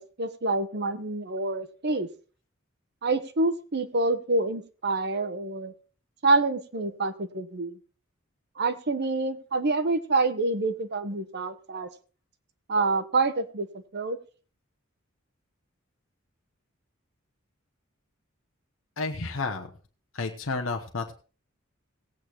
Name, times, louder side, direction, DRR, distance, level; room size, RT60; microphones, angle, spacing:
voice 1, 0.0-2.1 3.0-5.7 6.2-7.8 8.6-11.9 12.7-14.2, right 3 dB, 55° right, 10 dB, 1.0 m, -27 dB
voice 2, 19.0-19.7 20.1-21.1, left 3 dB, 70° left, 3 dB, 1.0 m, -31 dB
18.5 x 8.5 x 3.0 m, 0.37 s
head